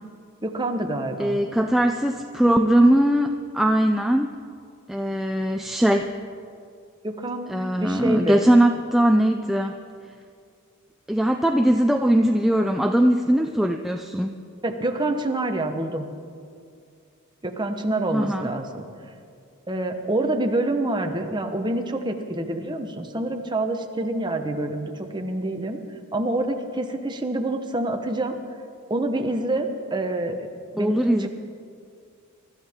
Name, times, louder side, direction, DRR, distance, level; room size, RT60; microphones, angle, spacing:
voice 1, 0.4-1.4 7.0-8.4 14.6-16.1 17.4-18.9 19.7-25.8 26.1-28.3 28.9-30.5 30.7-31.3, right 2 dB, 20° right, 4 dB, 1.0 m, -27 dB
voice 2, 1.2-4.4 4.9-6.1 7.5-9.8 11.1-14.3 18.1-18.5 30.8-31.3, right 1 dB, ahead, 3 dB, 0.4 m, -20 dB
23.5 x 13.5 x 3.6 m, 2.3 s
head